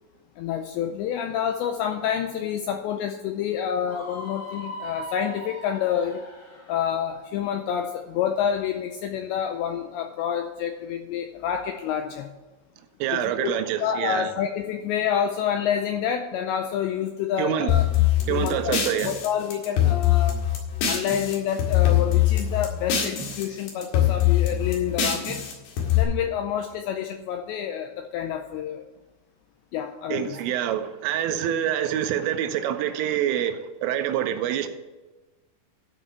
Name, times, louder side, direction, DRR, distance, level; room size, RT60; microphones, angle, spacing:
voice 1, 0.4-6.2 6.7-12.3 13.1-13.5 13.8-17.8 18.3-18.8 19.0-20.4 20.9-25.4 25.9-28.9 29.7-30.4, left 9 dB, 85° left, 5 dB, 2.5 m, -28 dB
Screaming, 3.9-6.8, equal, 40° left, 1.5 m, -39 dB
voice 2, 13.0-14.3 17.4-17.7 18.3-19.1 30.1-34.7, right 10 dB, 85° right, 8 dB, 3.3 m, -26 dB
sound 1, 17.7-21.3 21.6-23.4 23.7-26.0, left 11 dB, 65° left, 3.9 m, -22 dB
12.5 x 5.4 x 6.7 m, 1.2 s
omnidirectional pair, 5.8 m